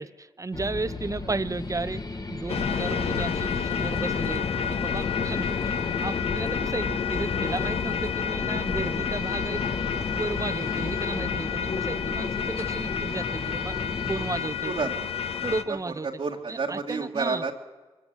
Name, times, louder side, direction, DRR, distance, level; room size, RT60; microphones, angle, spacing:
voice 1, 0.0-9.6 10.0-13.8 14.1-14.7 15.4-16.1 16.5-17.4, right 3 dB, 30° right, 0.9 m, -34 dB
sound 1, 0.5-14.4, left 3 dB, 35° left, 1.5 m, -35 dB
sound 2, 2.5-15.6, left 6 dB, 70° left, 1.3 m, -29 dB
voice 2, 14.6-15.1 15.4-17.5, right 4 dB, 65° right, 2.2 m, -31 dB
23.5 x 14.0 x 8.4 m
cardioid pair, 50°, 11 cm